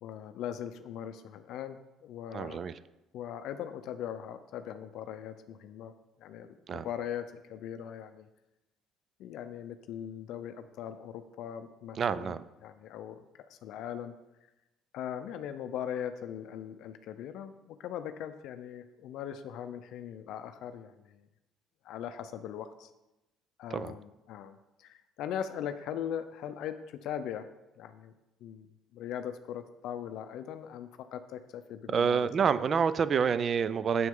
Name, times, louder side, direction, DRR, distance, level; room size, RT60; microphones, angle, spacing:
voice 1, 0.0-2.6 3.1-5.9 6.2-8.3 9.2-12.4 12.6-14.1 14.9-21.3 21.8-22.9 23.6-27.5 27.8-28.1 28.4-28.7 28.9-32.6, left 9 dB, 65° left, 9 dB, 0.5 m, -40 dB
voice 2, 2.3-2.8 6.7-6.9 12.0-12.4 23.7-24.0 31.9-34.1, right 6 dB, 35° right, 15 dB, 0.4 m, -28 dB
9.3 x 7.8 x 3.8 m, 0.98 s
cardioid pair, 145°, 0 cm